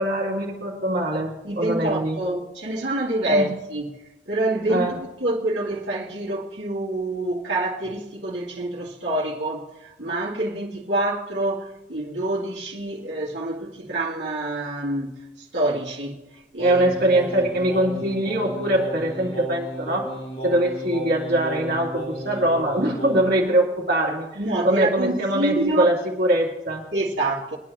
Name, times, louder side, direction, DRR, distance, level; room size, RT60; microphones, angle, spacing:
voice 1, 0.0-2.2 3.3-3.5 4.7-5.0 16.6-20.2 20.4-24.3 24.6-26.9, right 1 dB, 55° right, 3.2 m, -22 dB
voice 2, 1.4-4.0 4.3-16.8 24.3-25.9 26.9-27.6, right 1 dB, 70° right, 2.6 m, -27 dB
Singing, 16.6-23.4, right 1 dB, 30° left, 3.4 m, -34 dB
24.0 x 9.9 x 2.9 m
head